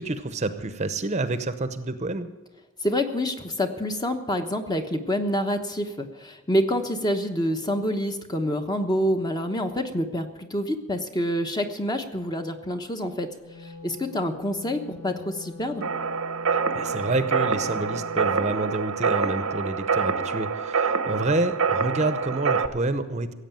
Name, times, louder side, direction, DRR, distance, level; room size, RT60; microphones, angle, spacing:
voice 1, 0.0-2.3 16.5-23.3, right 2 dB, 30° right, 11 dB, 0.7 m, -28 dB
voice 2, 2.8-13.3 13.6-15.8, equal, 20° left, 6 dB, 1.0 m, -27 dB
Wind instrument woodwind instrument, 13.3-18.4, left 5 dB, 60° left, 5.6 m, -43 dB
sound 1, 15.8-22.7, right 5 dB, 90° right, 0.9 m, -26 dB
16.0 x 8.1 x 9.0 m, 1.2 s
head